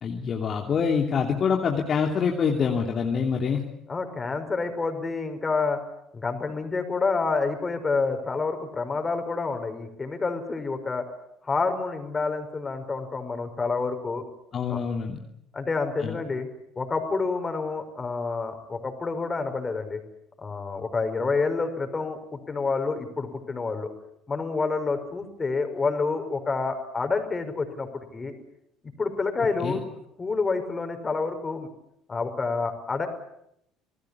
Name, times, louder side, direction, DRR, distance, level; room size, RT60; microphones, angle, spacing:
voice 1, 0.0-3.6 14.5-15.2 16.0-16.1 29.6-29.8, left 6 dB, 45° left, 1 dB, 2.9 m, -25 dB
voice 2, 3.9-5.8 6.1-11.1 11.4-14.2 14.7-14.8 15.5-16.5 16.8-20.0 20.4-23.9 24.3-28.4 29.0-29.8 30.2-31.7 32.1-33.1, left 4 dB, 25° left, 7 dB, 5.5 m, -28 dB
27.5 x 19.5 x 8.5 m, 0.76 s
hypercardioid pair, 60°, 0 cm